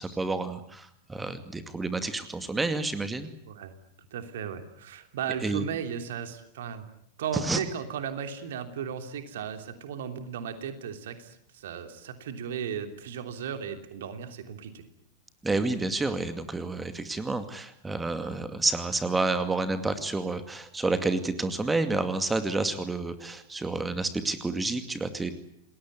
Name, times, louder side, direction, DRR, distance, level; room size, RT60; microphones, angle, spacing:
voice 1, 0.0-3.3 5.4-5.6 7.4-7.6 15.4-25.3, right 3 dB, 10° right, 10 dB, 2.3 m, -29 dB
voice 2, 4.1-6.9 7.2-14.8, right 8 dB, 60° right, 7 dB, 3.1 m, -36 dB
29.0 x 20.5 x 9.6 m, 0.73 s
figure-of-eight pair, 90°, 0 cm